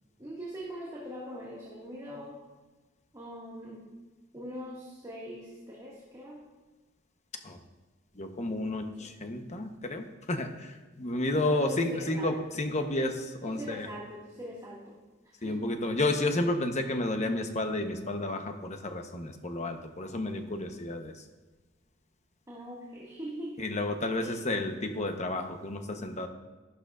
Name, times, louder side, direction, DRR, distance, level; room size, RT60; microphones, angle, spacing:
voice 1, 0.2-2.4 3.1-4.0 4.3-6.4 9.0-9.1 11.4-12.3 13.4-15.0 15.4-15.8 22.5-23.6 24.2-24.4, equal, 20° right, -6 dB, 2.0 m, -42 dB
voice 2, 8.1-13.9 15.4-21.1 23.6-26.3, left 2 dB, 35° left, 5 dB, 1.0 m, -31 dB
13.0 x 12.0 x 2.5 m, 1.3 s
head